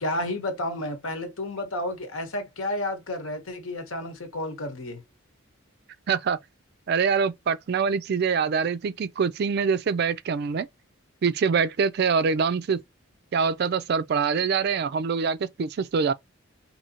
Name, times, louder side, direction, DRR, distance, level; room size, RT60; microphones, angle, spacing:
voice 1, 0.0-5.0, left 1 dB, 75° left, 1.0 m, -31 dB
voice 2, 6.1-6.4 6.9-10.7 11.2-12.8 13.3-16.1, right 5 dB, 50° right, 0.3 m, -24 dB
4.3 x 2.7 x 2.8 m
head